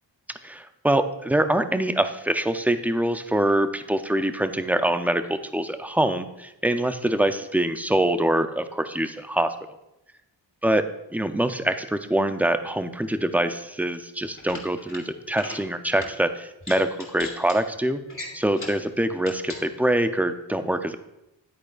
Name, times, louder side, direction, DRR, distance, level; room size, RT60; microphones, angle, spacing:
voice 1, 0.4-9.5 10.6-10.8 11.1-18.0 18.3-21.0, right 1 dB, 5° right, 9 dB, 0.4 m, -24 dB
sound 1, 14.2-15.0 15.3-15.6 15.9-16.1 16.6-17.6 18.1-18.8 19.2-19.6, left 2 dB, 25° left, 2.1 m, -38 dB
9.9 x 9.0 x 2.4 m, 0.89 s
wide cardioid pair, 85°, 46 cm